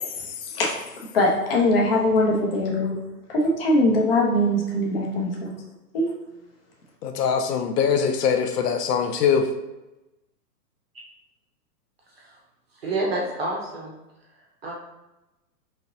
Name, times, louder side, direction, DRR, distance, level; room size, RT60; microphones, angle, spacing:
voice 1, 1.1-3.0 3.3-5.5 5.9-6.1, left 1 dB, 35° left, -1 dB, 0.7 m, -21 dB
voice 2, 7.0-9.5, left 7 dB, 75° left, 6 dB, 0.6 m, -22 dB
voice 3, 12.8-13.9 14.6-14.7, right 2 dB, 40° right, -2 dB, 0.6 m, -28 dB
4.2 x 3.1 x 2.7 m, 1.0 s
hypercardioid pair, 180°, 49 cm